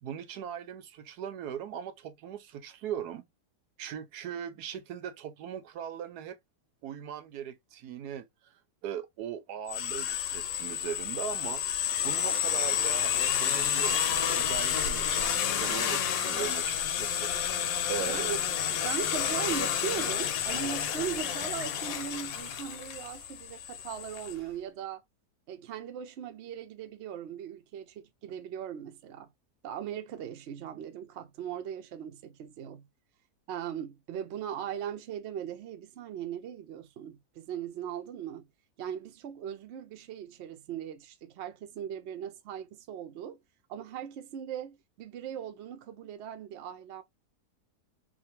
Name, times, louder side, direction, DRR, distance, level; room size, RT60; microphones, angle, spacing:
voice 1, 0.0-3.3 3.8-6.4 6.8-8.5 8.8-11.6 12.0-13.1 13.4-17.3 17.9-18.2, right 9 dB, 85° right, 1.2 m, -39 dB
sound 1, 9.7-24.3, left 9 dB, 70° left, 1.0 m, -30 dB
voice 2, 17.7-18.4 18.7-25.0 25.5-29.3 29.6-32.8 33.5-38.5 38.8-43.4 43.7-47.0, right 9 dB, 60° right, 0.7 m, -39 dB
2.7 x 2.5 x 2.8 m
omnidirectional pair, 1.7 m